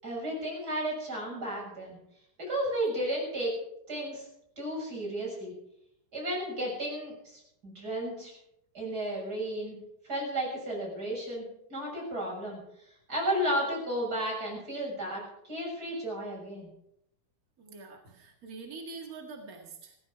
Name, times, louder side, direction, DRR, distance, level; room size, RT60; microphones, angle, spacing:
voice 1, 0.0-2.0 2.4-3.5 3.9-4.2 4.6-5.5 6.1-8.3 8.7-9.8 10.1-11.4 11.7-12.6 13.1-16.7, right 1 dB, 20° right, -2 dB, 7.2 m, -33 dB
voice 2, 17.6-20.0, right 4 dB, 50° right, 1 dB, 1.0 m, -45 dB
16.5 x 15.0 x 4.9 m, 0.75 s
omnidirectional pair, 4.7 m